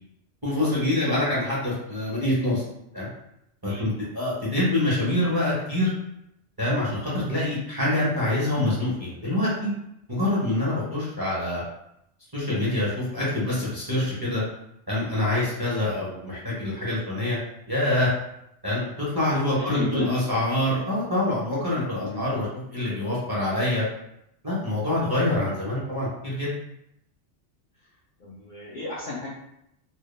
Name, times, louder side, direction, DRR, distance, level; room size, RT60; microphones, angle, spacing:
voice 1, 0.4-2.6 2.9-3.1 3.6-5.9 6.6-9.7 10.1-11.6 12.3-14.4 14.9-17.4 17.7-18.1 18.6-23.8 24.4-26.5, left 1 dB, 25° right, -8 dB, 0.6 m, -25 dB
voice 2, 19.6-20.4 22.0-22.2 25.3-25.5 28.2-29.3, left 2 dB, 55° left, -6 dB, 0.5 m, -34 dB
2.1 x 2.1 x 3.0 m, 0.81 s
omnidirectional pair, 1.2 m